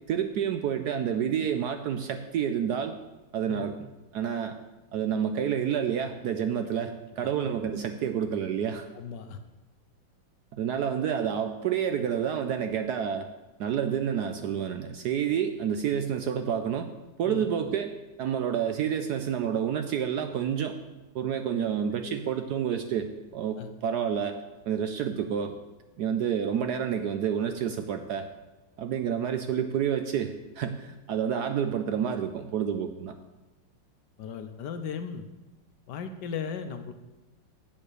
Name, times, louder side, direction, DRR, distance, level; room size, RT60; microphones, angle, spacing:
voice 1, 0.1-3.0 3.3-3.8 4.1-4.6 4.9-8.9 10.5-13.3 13.6-16.9 17.2-20.8 21.1-25.5 26.0-28.3 28.8-33.1, right 8 dB, 70° right, 7 dB, 1.0 m, -29 dB
voice 2, 8.9-9.4 17.2-17.4 22.1-22.2 23.5-23.7 34.2-35.3 35.9-36.9, left 6 dB, 70° left, 8 dB, 1.2 m, -36 dB
8.0 x 7.3 x 6.7 m, 1.1 s
omnidirectional pair, 2.2 m